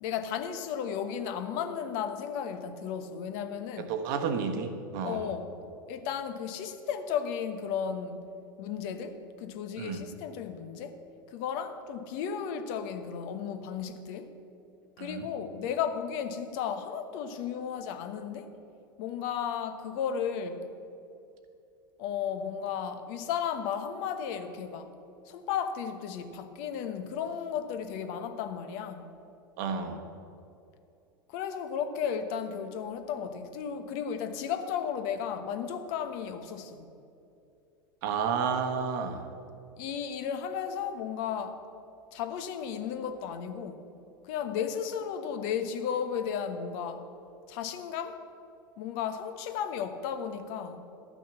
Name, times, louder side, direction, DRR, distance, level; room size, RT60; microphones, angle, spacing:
voice 1, 0.0-3.9 5.0-5.5 5.9-8.3 8.6-11.0 11.3-14.3 15.0-18.5 19.0-20.7 22.0-24.9 25.3-29.1 31.3-36.9 39.8-41.6 42.1-43.9 44.2-47.0 47.5-48.2 48.8-50.8, left 7 dB, 55° left, 8 dB, 1.0 m, -34 dB
voice 2, 3.8-5.2 9.8-10.0 15.0-15.2 29.6-30.0 38.0-39.2, right 6 dB, 60° right, 6 dB, 1.3 m, -31 dB
12.0 x 6.3 x 6.9 m, 2.6 s
hypercardioid pair, 85°, 12 cm